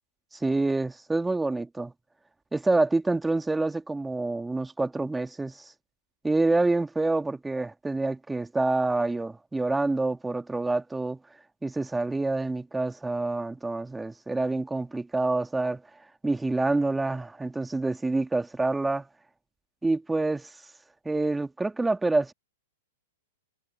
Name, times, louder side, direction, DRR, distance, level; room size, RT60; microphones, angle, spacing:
voice 1, 0.3-1.9 2.5-5.7 6.2-11.2 11.6-15.8 16.2-19.1 19.8-20.5 21.1-22.3, right 2 dB, 5° right, 2.1 m, -27 dB
hypercardioid pair, 110°, 0 cm